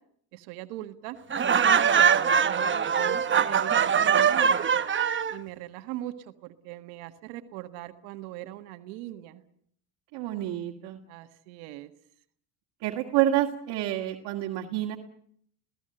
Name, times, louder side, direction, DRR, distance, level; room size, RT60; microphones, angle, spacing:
voice 1, 0.3-1.2 2.0-4.7 5.3-9.4 11.1-11.9, right 15 dB, 85° right, 8 dB, 1.6 m, -40 dB
Laughter, 1.3-5.4, right 7 dB, 25° right, 1.1 m, -22 dB
voice 2, 10.1-11.0 12.8-15.0, right 13 dB, 70° right, 0 dB, 2.1 m, -28 dB
29.0 x 17.0 x 7.8 m, 0.67 s
supercardioid pair, 100°, 43 cm